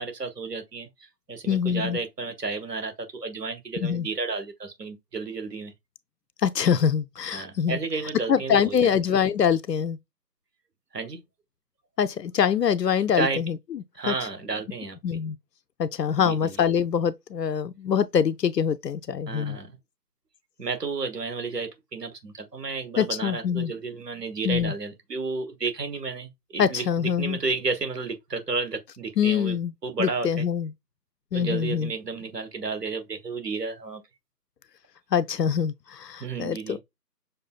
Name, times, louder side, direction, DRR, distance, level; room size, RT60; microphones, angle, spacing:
voice 1, 0.0-5.7 7.3-8.9 10.9-11.2 13.1-13.4 14.0-15.0 16.2-16.5 19.3-19.8 20.6-26.8 27.2-29.6 29.8-30.4 31.3-34.0 36.2-36.8, right 4 dB, 75° right, 1.3 m, -32 dB
voice 2, 1.5-2.0 3.8-4.1 6.4-7.8 8.3-10.0 12.0-14.1 15.0-15.4 15.8-19.6 23.0-23.7 24.4-24.7 26.6-27.4 29.2-29.7 30.0-30.7 31.3-31.9 35.1-36.8, left 7 dB, 75° left, 0.6 m, -24 dB
6.5 x 2.3 x 2.3 m
figure-of-eight pair, 175°, 49 cm